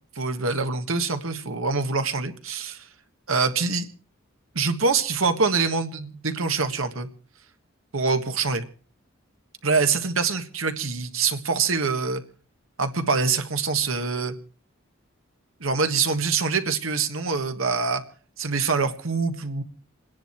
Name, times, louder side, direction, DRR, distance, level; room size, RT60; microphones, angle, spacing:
voice 1, 0.1-2.8 3.3-3.9 4.5-7.1 7.9-8.6 9.6-12.2 12.8-14.3 15.6-18.0 18.4-19.6, right 4 dB, 75° right, 8 dB, 1.5 m, -25 dB
28.0 x 10.5 x 4.5 m, 0.39 s
head